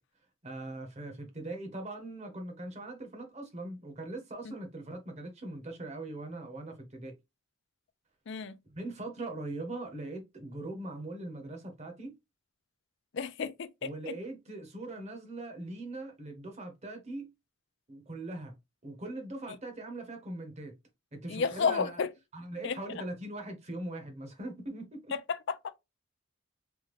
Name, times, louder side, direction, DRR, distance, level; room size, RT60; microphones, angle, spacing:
voice 1, 0.4-7.1 8.7-12.1 13.8-17.3 17.9-18.5 18.8-20.7 21.1-22.0 22.3-25.1, right 2 dB, 35° right, 0.9 m, -41 dB
voice 2, 13.1-14.1 21.3-22.1 22.6-22.8 25.3-25.6, left 5 dB, 60° left, 0.4 m, -31 dB
3.4 x 2.2 x 3.1 m
head